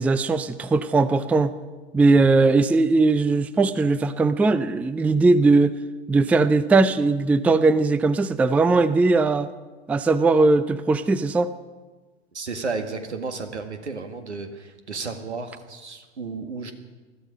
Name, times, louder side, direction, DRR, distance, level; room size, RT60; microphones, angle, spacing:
voice 1, 0.0-1.6 1.9-5.8 6.1-9.5 9.9-11.5, right 3 dB, 5° right, 15 dB, 0.4 m, -19 dB
voice 2, 12.3-16.7, right 4 dB, 85° right, 6 dB, 1.9 m, -33 dB
20.5 x 13.0 x 5.2 m, 1.3 s
figure-of-eight pair, 90°, 33 cm